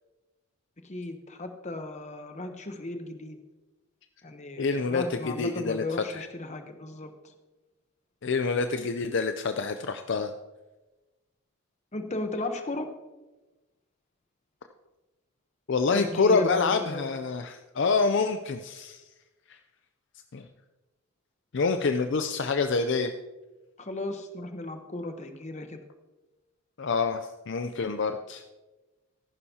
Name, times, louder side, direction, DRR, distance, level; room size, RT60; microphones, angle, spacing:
voice 1, 0.8-3.4 4.2-7.1 11.9-12.9 15.9-17.1 23.8-25.8, left 2 dB, 30° left, 7 dB, 0.9 m, -35 dB
voice 2, 4.6-5.8 6.1-6.3 8.2-10.3 15.7-19.0 19.5-19.6 20.3-20.4 21.5-23.1 26.8-28.4, left 4 dB, 55° left, 8 dB, 0.5 m, -27 dB
14.5 x 11.0 x 2.8 m, 1.1 s
head